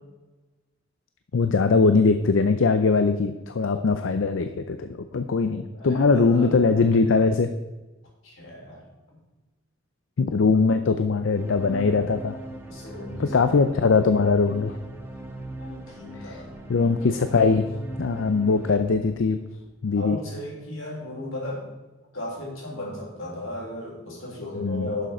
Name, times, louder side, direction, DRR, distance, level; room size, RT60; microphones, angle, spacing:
voice 1, 1.3-7.5 10.2-12.4 13.2-14.8 16.1-16.4 16.7-17.7 18.0-19.4 19.8-20.2 24.6-24.9, left 4 dB, 70° left, 9 dB, 0.5 m, -21 dB
voice 2, 5.4-6.5 8.2-8.8 12.7-13.4 15.6-16.6 19.9-21.6 22.1-25.1, left 1 dB, 85° left, -3 dB, 3.8 m, -35 dB
sound 1, 11.3-19.8, right 1 dB, 10° right, 1.3 m, -40 dB
11.5 x 6.7 x 4.3 m, 1.1 s
head